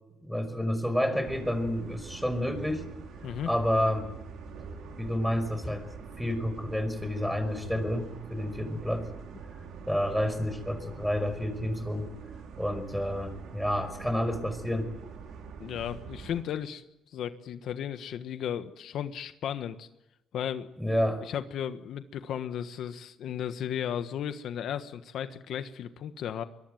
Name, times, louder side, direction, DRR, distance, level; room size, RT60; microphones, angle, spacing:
voice 1, 0.2-2.8 3.5-4.1 5.0-5.9 6.2-9.1 9.9-12.1 12.6-14.9 20.8-21.2, equal, ahead, 9 dB, 5.5 m, -29 dB
sound 1, 1.2-16.4, right 5 dB, 80° right, 4.6 m, -44 dB
voice 2, 15.6-16.8 17.1-19.9 20.3-20.7 21.2-26.4, left 9 dB, 75° left, 9 dB, 1.3 m, -35 dB
23.5 x 22.5 x 9.3 m, 0.89 s
cardioid pair, 90°, 0 cm